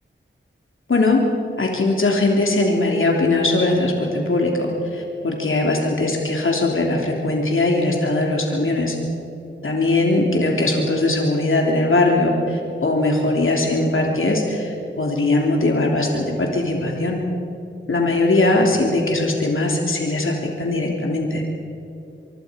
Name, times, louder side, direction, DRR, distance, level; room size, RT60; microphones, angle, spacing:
voice 1, 0.9-1.2 1.6-8.9 9.6-17.2 17.9-21.4, left 2 dB, 75° left, 0 dB, 3.3 m, -20 dB
25.0 x 24.0 x 5.2 m, 2.9 s
wide cardioid pair, 75°, 21 cm